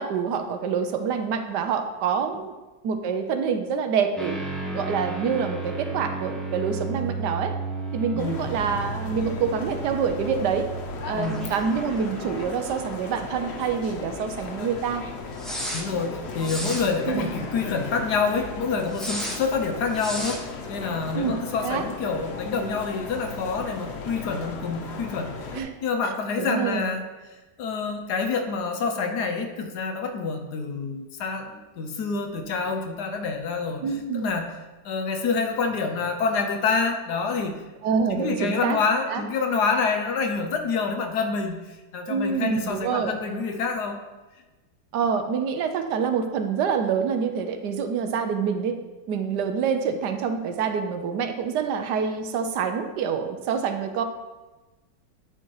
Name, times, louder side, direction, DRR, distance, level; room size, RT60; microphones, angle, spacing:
voice 1, 0.0-2.5 2.8-4.4 4.7-7.5 7.9-10.7 11.1-15.0 17.1-17.3 21.1-21.3 21.6-21.8 25.5-25.7 26.0-26.8 33.8-34.3 37.8-38.8 39.1-39.2 42.1-43.2 44.9-48.8 49.1-54.0, right 6 dB, 75° right, 7 dB, 1.2 m, -26 dB
sound 1, 4.2-13.3 13.6-13.7 15.4-15.8 16.4-16.9 18.9-19.4 19.9-20.4, right 2 dB, ahead, 0.6 m, -33 dB
sound 2, 8.2-25.6, left 4 dB, 55° left, 0.8 m, -36 dB
voice 2, 11.1-11.5 15.7-25.4 25.8-27.0 27.6-33.8 34.1-34.5 34.8-37.6 38.1-44.0, left 4 dB, 70° left, 5 dB, 1.3 m, -27 dB
9.0 x 4.3 x 4.7 m, 1.2 s
omnidirectional pair, 1.9 m